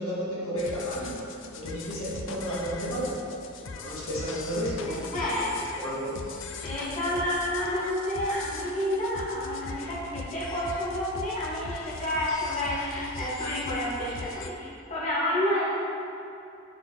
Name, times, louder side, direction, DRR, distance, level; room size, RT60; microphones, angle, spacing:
voice 1, 0.0-3.2 3.8-5.1 5.4-6.3, equal, 80° left, -7 dB, 2.1 m, -32 dB
sound 1, 0.6-14.5, left 4 dB, 65° left, 0.6 m, -40 dB
voice 2, 4.8-5.5 6.6-15.6, left 1 dB, 35° left, -9 dB, 2.2 m, -30 dB
10.0 x 6.3 x 4.1 m, 2.6 s
head